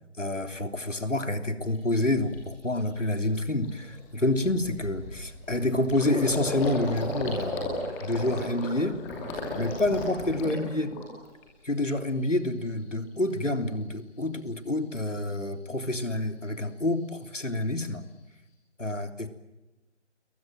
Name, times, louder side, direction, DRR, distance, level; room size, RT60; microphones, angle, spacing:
voice 1, 0.2-9.0 9.6-10.9 11.6-18.0 18.8-19.3, left 1 dB, 85° left, 7 dB, 3.4 m, -28 dB
Gurgling, 1.7-1.8 2.3-2.6 3.0-3.1 3.4-11.4 11.8-12.4, left 2 dB, 5° left, 2.4 m, -35 dB
29.5 x 22.5 x 7.6 m, 1.0 s
figure-of-eight pair, 160°, 36 cm